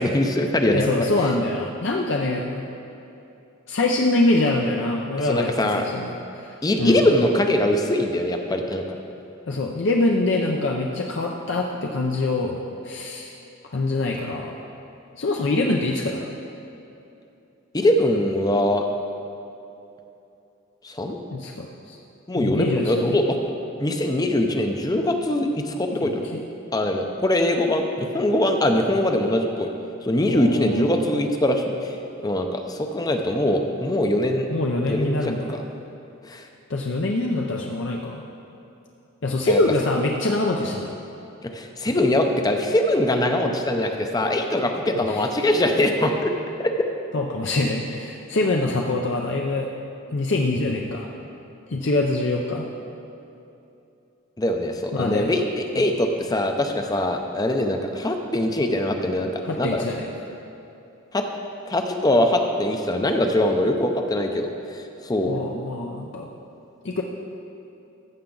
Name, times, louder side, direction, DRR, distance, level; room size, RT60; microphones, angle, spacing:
voice 1, 0.0-1.1 5.2-5.8 6.6-8.8 17.7-18.9 20.8-21.2 22.3-23.4 23.8-26.3 26.7-29.7 30.0-31.9 32.2-34.5 34.9-35.2 35.5-35.6 36.3-36.5 39.5-39.6 41.5-46.3 46.6-46.7 54.4-59.8 61.1-61.3 61.7-65.3, left 1 dB, 20° left, 4 dB, 0.6 m, -22 dB
voice 2, 0.7-2.6 3.7-7.0 9.5-13.3 13.7-14.6 15.2-16.3 21.3-22.0 22.4-23.2 26.0-26.4 30.2-31.1 34.5-35.5 36.7-38.2 39.2-40.9 45.1-45.3 47.1-49.7 50.1-51.1 51.7-52.7 54.9-55.3 59.4-60.1 65.3-66.3 66.8-67.0, left 2 dB, 60° left, 0 dB, 0.6 m, -24 dB
14.5 x 7.1 x 3.9 m, 2.8 s
head